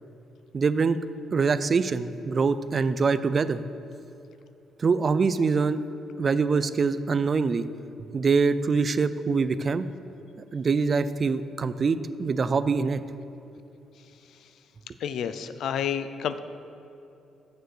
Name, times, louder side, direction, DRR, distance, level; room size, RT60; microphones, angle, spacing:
voice 1, 0.5-1.0 1.3-3.6 4.8-5.8 6.2-7.6 8.1-9.8 10.5-13.0, right 4 dB, 40° right, 14 dB, 0.4 m, -24 dB
voice 2, 15.0-16.4, left 8 dB, 75° left, 12 dB, 0.4 m, -29 dB
6.8 x 6.5 x 6.2 m, 2.8 s
cardioid pair, 90°, 0 cm